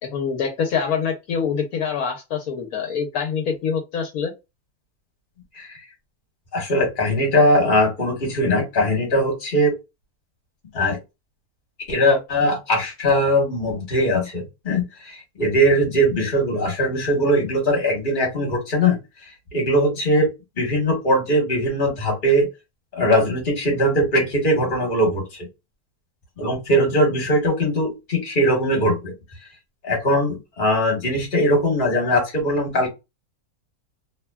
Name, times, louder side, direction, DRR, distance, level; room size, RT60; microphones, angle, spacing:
voice 1, 0.0-4.3, left 6 dB, 80° left, 1.2 m, -25 dB
voice 2, 6.5-9.7 10.7-11.0 11.9-19.0 19.5-20.3 20.6-22.5 22.9-25.5 26.4-29.1 29.8-32.9, equal, 35° left, 1.3 m, -20 dB
3.0 x 2.1 x 2.3 m
omnidirectional pair, 1.6 m